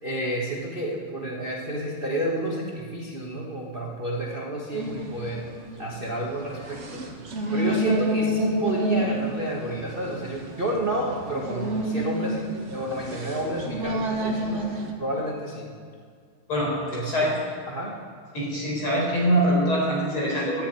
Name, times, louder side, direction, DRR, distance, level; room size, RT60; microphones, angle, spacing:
voice 1, 0.0-5.5 5.8-7.0 7.5-14.6 15.0-15.6 16.9-17.3 17.7-18.0, right 1 dB, 80° right, -3 dB, 0.5 m, -30 dB
sound 1, 4.7-14.9, right 1 dB, 45° right, 0.9 m, -29 dB
voice 2, 18.3-20.7, equal, 35° left, -4 dB, 5.3 m, -23 dB
12.5 x 11.5 x 8.8 m, 2.1 s
omnidirectional pair, 3.8 m